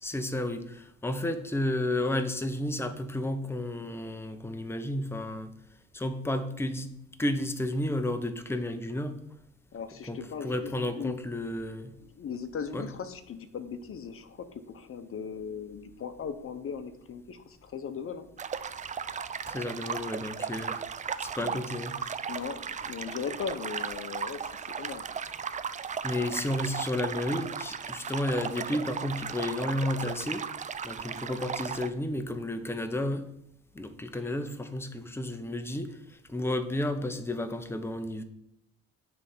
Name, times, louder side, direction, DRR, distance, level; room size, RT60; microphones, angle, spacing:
voice 1, 0.0-5.5 5.9-6.9 7.2-9.2 10.1-11.9 12.7-12.9 19.5-20.9 21.2-22.1 26.0-30.5 30.8-33.3 33.7-38.2, left 1 dB, 10° left, 0.7 m, -32 dB
voice 2, 9.7-11.2 12.0-18.3 21.4-21.6 22.3-25.1, left 6 dB, 45° left, 0.9 m, -38 dB
sound 1, 18.4-31.9, right 6 dB, 25° right, 0.4 m, -36 dB
9.6 x 3.4 x 5.6 m
cardioid pair, 90°, 30 cm